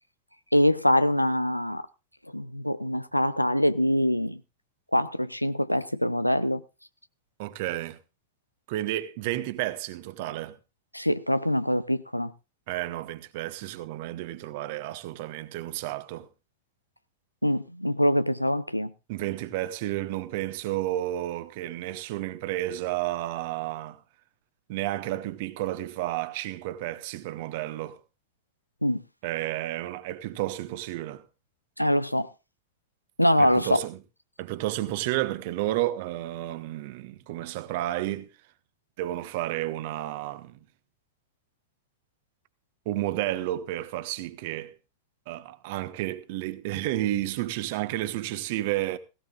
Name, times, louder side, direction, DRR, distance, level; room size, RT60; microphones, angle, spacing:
voice 1, 0.5-1.8 2.3-4.4 4.9-6.6 10.9-12.3 17.4-18.9 28.8-29.0 31.8-32.3 33.2-33.8, equal, 90° left, 0.6 m, -24 dB
voice 2, 7.4-8.0 8.7-10.6 12.7-16.3 19.1-24.0 24.7-28.0 29.2-31.2 33.4-34.0 34.4-38.3 39.0-40.6 42.8-44.7 45.3-49.0, right 15 dB, 50° right, 1.2 m, -31 dB
17.5 x 16.5 x 2.4 m
figure-of-eight pair, 90°, 0 cm